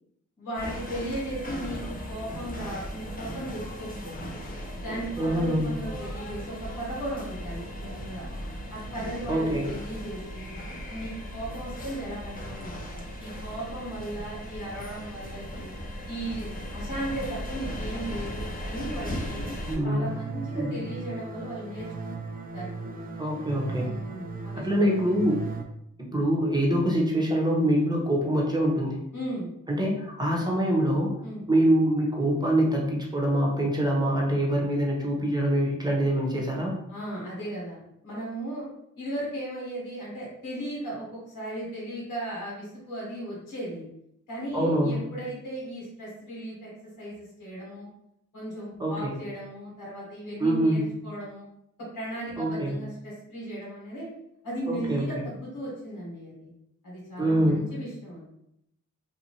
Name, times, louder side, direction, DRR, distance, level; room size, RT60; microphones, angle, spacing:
voice 1, 0.4-4.3 4.7-8.2 8.7-10.5 10.9-15.7 16.1-19.4 19.8-22.3 22.5-23.0 23.8-24.7 29.1-29.5 31.2-31.4 36.9-38.7 38.9-43.8 44.3-46.7 47.0-47.9 48.3-51.4 51.8-54.1 54.4-56.5 56.8-58.2, right 1 dB, 85° left, -6 dB, 1.3 m, -36 dB
sound 1, 0.5-19.8, equal, 25° left, 0.9 m, -37 dB
voice 2, 5.2-5.7 9.3-9.7 19.6-20.1 20.5-20.8 23.2-23.9 24.5-25.4 26.1-29.0 29.7-31.1 31.5-36.7 44.5-45.0 48.8-49.1 50.4-50.9 52.4-52.8 54.7-55.0 57.2-57.7, right 1 dB, 15° right, -2 dB, 1.0 m, -24 dB
sound 2, 20.1-25.6, right 4 dB, 30° right, 0.5 m, -37 dB
2.6 x 2.5 x 2.9 m, 0.77 s
cardioid pair, 45°, 31 cm